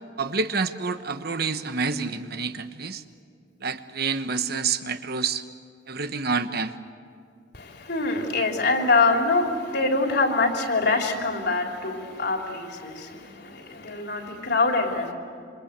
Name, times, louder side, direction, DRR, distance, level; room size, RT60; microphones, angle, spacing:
voice 1, 0.2-3.0 3.6-5.4 5.9-6.7, right 4 dB, 60° right, 10 dB, 1.2 m, -28 dB
voice 2, 7.5-15.1, left 3 dB, 60° left, 2 dB, 3.5 m, -24 dB
27.5 x 25.5 x 8.2 m, 2.3 s
head